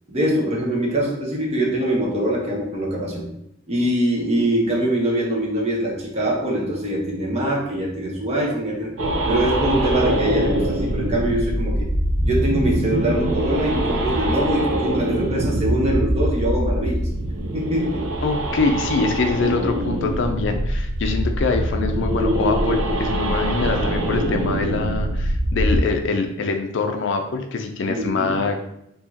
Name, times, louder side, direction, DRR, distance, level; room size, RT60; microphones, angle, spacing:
voice 1, 0.1-3.3 3.7-8.9 9.3-11.9 12.2-17.0 17.5-18.1 27.9-28.4, right 1 dB, 30° right, -2 dB, 0.9 m, -23 dB
sound 1, 9.0-25.8, right 1 dB, 85° right, 0.6 m, -23 dB
voice 2, 18.2-28.6, left 4 dB, 65° left, 5 dB, 0.4 m, -24 dB
4.7 x 2.8 x 2.8 m, 0.79 s
head